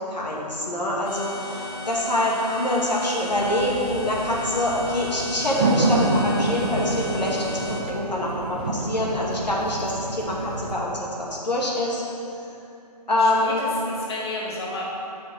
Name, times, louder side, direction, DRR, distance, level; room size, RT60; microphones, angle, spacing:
voice 1, 0.0-12.0 13.1-13.6, left 1 dB, 85° left, -3 dB, 2.1 m, -25 dB
sound 1, 1.1-7.8, left 1 dB, 60° left, 2.2 m, -36 dB
sound 2, 3.3-10.7, right 2 dB, 15° right, 0.4 m, -28 dB
voice 2, 13.2-14.9, left 2 dB, 40° left, -3 dB, 1.2 m, -32 dB
7.3 x 5.8 x 6.6 m, 2.7 s
figure-of-eight pair, 150°, 21 cm